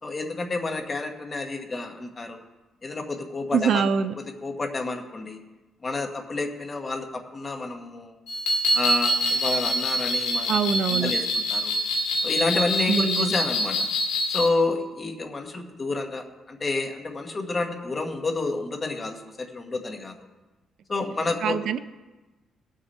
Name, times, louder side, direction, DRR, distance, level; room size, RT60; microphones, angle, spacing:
voice 1, 0.0-2.4 2.8-3.9 4.2-5.4 5.8-8.1 8.7-10.5 10.9-11.8 12.2-13.9 14.3-20.1 20.9-21.6, left 3 dB, 25° left, 4 dB, 1.3 m, -29 dB
voice 2, 3.5-4.1 10.5-11.1 12.9-13.3 21.4-21.8, right 7 dB, 60° right, 13 dB, 0.4 m, -24 dB
sound 1, 8.3-14.5, equal, 85° left, 2.3 m, -25 dB
18.5 x 6.4 x 4.2 m, 1.2 s
cardioid pair, 135°, 0 cm